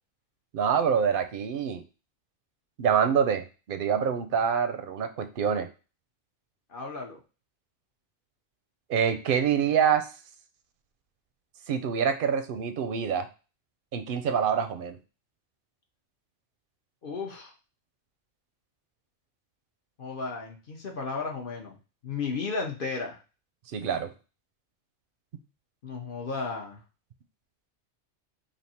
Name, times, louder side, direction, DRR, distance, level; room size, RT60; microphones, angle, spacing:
voice 1, 0.5-1.8 2.8-5.7 8.9-10.1 11.7-13.3 13.9-15.0 23.7-24.1, right 7 dB, 60° right, 8 dB, 0.6 m, -26 dB
voice 2, 6.7-7.2 17.0-17.5 20.0-21.8 22.0-23.2 25.8-26.8, left 4 dB, 50° left, 1 dB, 0.9 m, -34 dB
3.4 x 2.6 x 4.1 m, 0.32 s
omnidirectional pair, 1.2 m